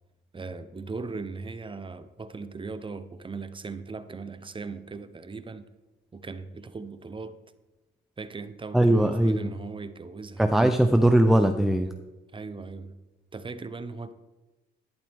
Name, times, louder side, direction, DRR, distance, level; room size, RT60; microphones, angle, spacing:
voice 1, 0.3-5.7 6.1-7.3 8.2-10.5 12.3-13.0 13.3-14.1, right 4 dB, 25° right, 0.8 m, -38 dB
voice 2, 8.7-9.5 10.4-11.9, right 1 dB, ahead, 0.6 m, -20 dB
12.0 x 11.0 x 3.5 m
cardioid pair, 90°, 20 cm